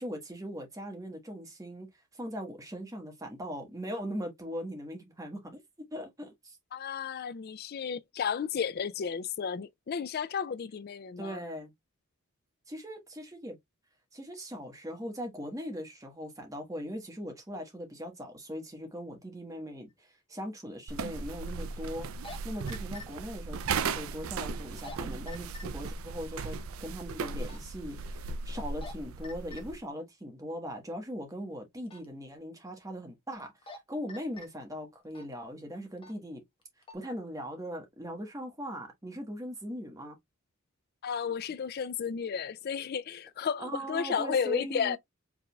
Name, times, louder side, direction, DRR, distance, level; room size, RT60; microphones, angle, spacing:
voice 1, 0.0-1.9 2.1-6.6 11.2-11.7 12.7-13.6 14.1-36.4 36.9-40.2 43.6-45.0, equal, 15° right, 1.2 m, -40 dB
voice 2, 6.7-11.4 41.0-45.0, left 7 dB, 45° left, 0.3 m, -33 dB
sound 1, 20.0-20.1 22.0-22.4 22.7-23.1 24.7-25.0 25.3-25.6 26.3-26.5 27.4-27.7 28.5-28.9 29.2-29.6 31.9-32.1 33.4-33.8 34.1-34.5 35.1-35.3 36.0-36.2 36.6-37.0, left 3 dB, 25° left, 1.1 m, -45 dB
sound 2, 20.9-29.8, right 4 dB, 65° right, 0.4 m, -37 dB
4.8 x 3.6 x 2.3 m
head